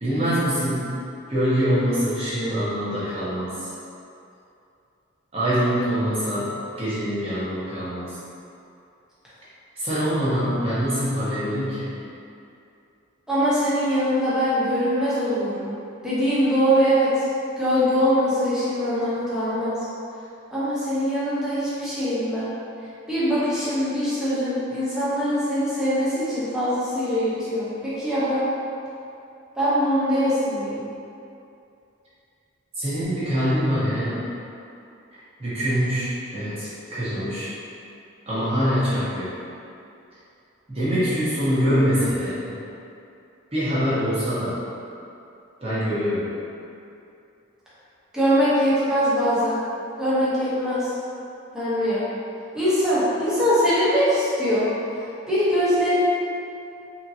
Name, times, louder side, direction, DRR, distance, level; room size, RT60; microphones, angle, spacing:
voice 1, 0.0-1.0 1.3-3.5 5.3-6.5 6.8-8.2 9.8-11.9 32.8-34.2 35.4-37.5 38.3-39.3 40.7-42.6 43.5-44.6 45.6-46.3, equal, 30° right, -11 dB, 1.0 m, -24 dB
voice 2, 13.3-15.8 16.0-17.3 17.6-19.7 20.5-22.5 23.1-28.5 29.6-30.8 48.1-49.6 50.0-50.9 51.5-52.0 52.5-54.7 55.3-55.9, equal, 5° right, -12 dB, 0.8 m, -22 dB
3.6 x 2.8 x 2.7 m, 2.7 s
head